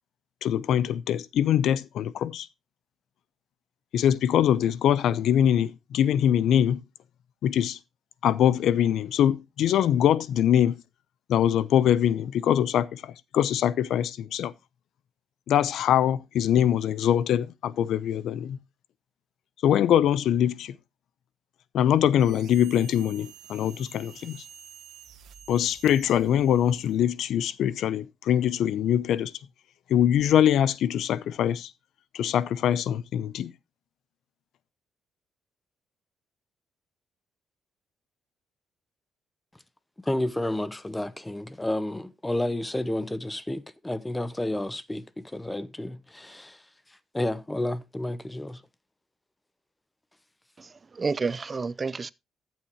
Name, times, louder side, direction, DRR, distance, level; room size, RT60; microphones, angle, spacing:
voice 1, 0.4-2.5 3.9-6.8 7.4-7.8 8.2-10.8 11.3-14.5 15.5-18.6 19.6-20.8 21.7-24.4 25.5-29.3 29.9-31.7 32.1-33.5, left 10 dB, 75° left, 0.7 m, -23 dB
sound 1, 22.2-27.1, right 9 dB, 75° right, 1.3 m, -49 dB
voice 2, 40.0-46.6 47.1-48.6, left 1 dB, 10° left, 0.8 m, -31 dB
voice 3, 50.6-52.1, right 4 dB, 35° right, 0.5 m, -30 dB
14.5 x 7.5 x 3.0 m
cardioid pair, 90°, 0 cm